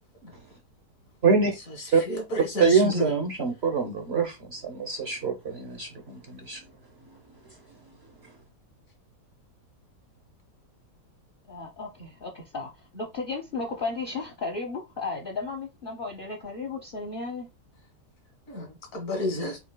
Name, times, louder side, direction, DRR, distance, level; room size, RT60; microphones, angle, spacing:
voice 1, 2.1-3.1 18.5-19.6, left 1 dB, 55° left, 2.0 m, -31 dB
voice 2, 2.6-6.6 7.1-7.2 7.8-7.9, right 5 dB, 45° right, 1.0 m, -25 dB
voice 3, 11.5-17.5, left 3 dB, 35° left, 1.0 m, -34 dB
7.0 x 3.3 x 2.2 m
omnidirectional pair, 1.8 m